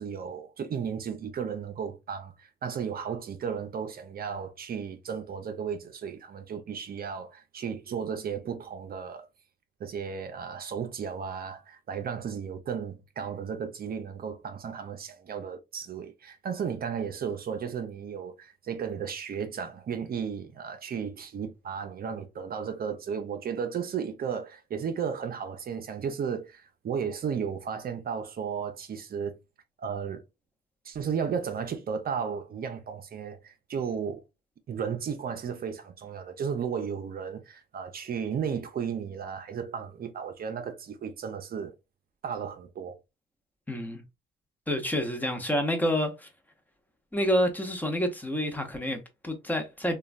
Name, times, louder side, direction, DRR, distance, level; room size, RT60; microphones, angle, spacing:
voice 1, 0.0-9.3 9.8-29.4 29.8-30.2 30.8-34.2 34.7-41.7 42.2-43.0, right 7 dB, 50° right, 0.6 m, -34 dB
voice 2, 43.7-44.0 44.7-46.3 47.1-50.0, equal, 10° left, 0.7 m, -28 dB
3.0 x 2.3 x 2.4 m
cardioid pair, 90°, 20 cm